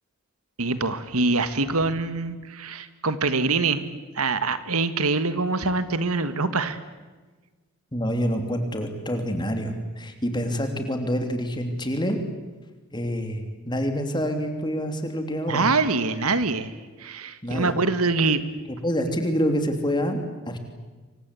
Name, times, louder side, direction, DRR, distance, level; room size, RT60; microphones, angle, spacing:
voice 1, 0.6-3.8 4.2-6.8 15.5-16.7 17.0-18.4, right 3 dB, 80° right, 12 dB, 1.8 m, -24 dB
voice 2, 7.9-12.2 12.9-15.7 17.4-17.7 18.8-20.2 20.5-20.6, equal, 20° left, 6 dB, 3.1 m, -27 dB
28.0 x 24.5 x 8.5 m, 1.3 s
head